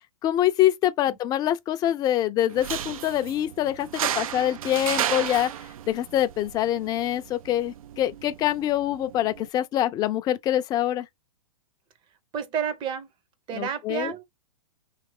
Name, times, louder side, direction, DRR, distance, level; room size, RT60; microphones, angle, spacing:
voice 1, 0.2-5.5 5.9-11.1 13.5-14.1, left 12 dB, 20° left, 0.4 m, -25 dB
sound 1, 2.5-9.5, right 10 dB, 70° right, 0.4 m, -34 dB
voice 2, 12.3-13.1 13.5-14.3, right 7 dB, 25° right, 0.7 m, -30 dB
3.2 x 3.1 x 3.6 m
hypercardioid pair, 130°, 18 cm